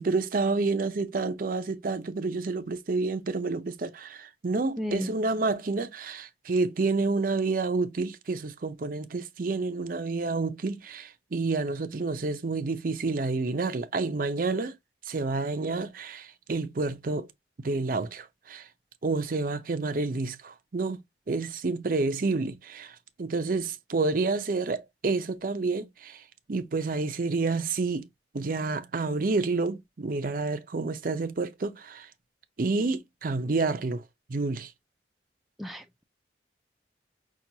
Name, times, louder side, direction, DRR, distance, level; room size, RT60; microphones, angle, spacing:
voice 1, 0.0-14.7 15.1-17.3 17.6-18.7 19.0-21.0 21.3-26.2 26.5-28.1 28.3-32.1 32.6-34.7, right 3 dB, 50° right, 0.5 m, -29 dB
voice 2, 4.8-5.1 35.6-36.0, equal, ahead, 0.4 m, -33 dB
5.9 x 2.3 x 2.7 m
head